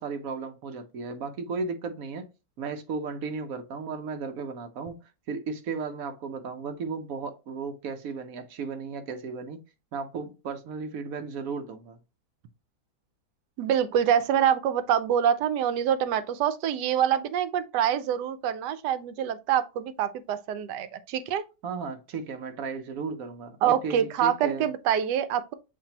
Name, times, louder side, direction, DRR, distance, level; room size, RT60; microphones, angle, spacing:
voice 1, 0.0-2.3 2.6-5.0 5.3-9.6 9.9-12.0 21.6-24.7, right 5 dB, 60° right, 1.1 m, -35 dB
voice 2, 13.6-21.4 23.6-25.5, right 9 dB, 85° right, 1.2 m, -25 dB
7.1 x 2.7 x 2.8 m
omnidirectional pair, 1.8 m